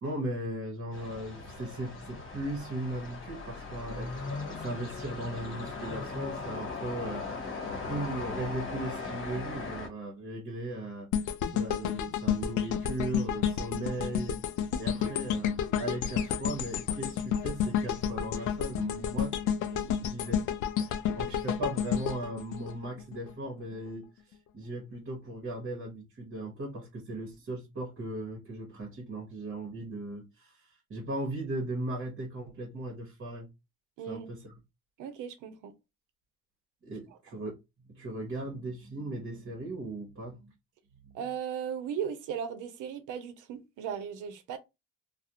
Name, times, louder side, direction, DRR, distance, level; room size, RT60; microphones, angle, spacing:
voice 1, 0.0-11.1 11.5-14.4 14.8-19.4 19.8-20.4 20.8-33.5 34.1-34.5 36.8-37.6 37.9-40.5 41.0-41.2, right 1 dB, 45° right, 0.9 m, -38 dB
sound 1, 0.9-9.9, left 3 dB, 45° left, 0.9 m, -38 dB
sound 2, 11.1-23.3 23.7-23.9, left 8 dB, 75° left, 0.4 m, -31 dB
voice 2, 35.0-35.7 41.1-44.6, right 8 dB, 85° right, 0.6 m, -37 dB
2.4 x 2.0 x 2.8 m
cardioid pair, 90°, 30 cm